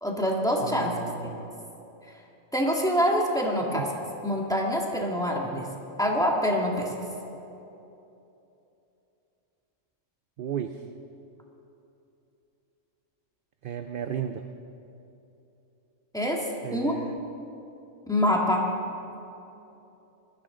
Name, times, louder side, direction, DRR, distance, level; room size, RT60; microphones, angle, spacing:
voice 1, 0.0-1.4 2.5-5.7 6.0-6.9 16.1-16.4 16.7-16.9 18.1-18.7, equal, 5° left, -1 dB, 1.7 m, -26 dB
voice 2, 0.6-1.5 3.7-3.8 10.4-10.8 13.6-14.4 16.6-17.1, right 8 dB, 55° right, 7 dB, 0.6 m, -34 dB
21.0 x 14.5 x 3.9 m, 2.9 s
omnidirectional pair, 1.3 m